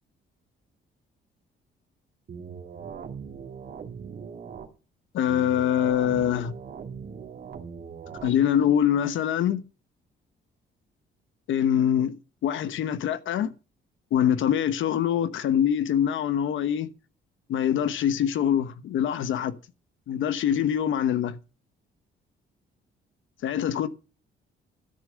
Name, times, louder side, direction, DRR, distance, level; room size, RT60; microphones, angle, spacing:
sound 1, 2.3-4.7 5.3-8.3, right 6 dB, 55° right, 2.5 m, -40 dB
voice 1, 5.1-6.5 8.2-9.6 11.5-13.5 14.1-16.9 17.5-19.5 20.1-21.4 23.4-23.9, left 9 dB, 75° left, 1.1 m, -24 dB
13.0 x 6.4 x 7.4 m
cardioid pair, 90°, 20 cm